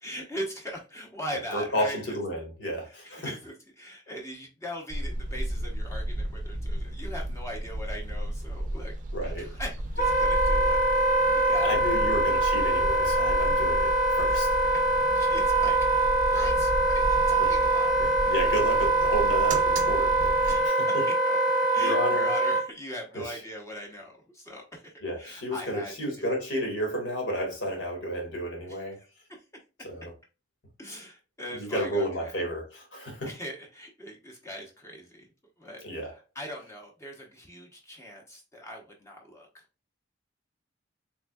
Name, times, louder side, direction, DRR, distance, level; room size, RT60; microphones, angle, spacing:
voice 1, 0.0-2.2 2.8-8.9 9.4-10.8 11.0-12.5 14.3-14.4 14.7-17.9 18.4-18.5 20.5-24.8 25.2-25.9 28.7-29.1 30.8-32.4 33.3-35.3 35.6-39.5, equal, 15° left, 0.8 m, -40 dB
voice 2, 1.5-3.3 9.1-9.5 11.5-14.5 17.4-17.5 18.0-21.0 21.8-22.3 23.1-23.4 25.0-29.0 29.8-30.1 31.5-33.3 35.8-36.1, equal, 75° left, 1.5 m, -32 dB
sound 1, 4.9-20.7, right 1 dB, 40° right, 0.5 m, -34 dB
Wind instrument woodwind instrument, 10.0-22.6, right 2 dB, 45° left, 0.8 m, -24 dB
3.5 x 3.4 x 2.3 m
head